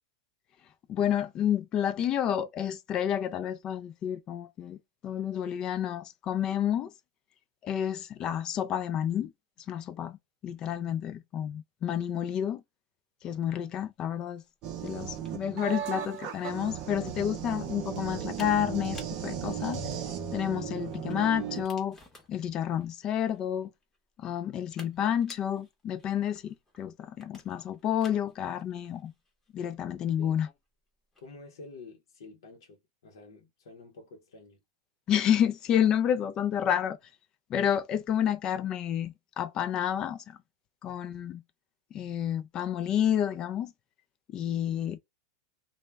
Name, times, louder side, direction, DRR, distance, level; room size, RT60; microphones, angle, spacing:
voice 1, 0.9-6.9 7.6-9.3 9.7-12.6 13.2-14.4 14.8-19.8 20.3-22.0 22.3-23.7 24.2-29.1 29.5-30.5 35.1-37.0 37.5-40.4 40.8-41.4 41.9-43.7 44.3-45.0, left 9 dB, 30° left, 0.3 m, -30 dB
sound 1, 14.0-31.4, left 2 dB, 10° left, 0.8 m, -56 dB
sound 2, 14.6-21.7, right 8 dB, 40° right, 0.5 m, -36 dB
voice 2, 31.2-34.6, left 3 dB, 80° left, 0.7 m, -49 dB
2.1 x 2.1 x 3.3 m
supercardioid pair, 135°, 2 cm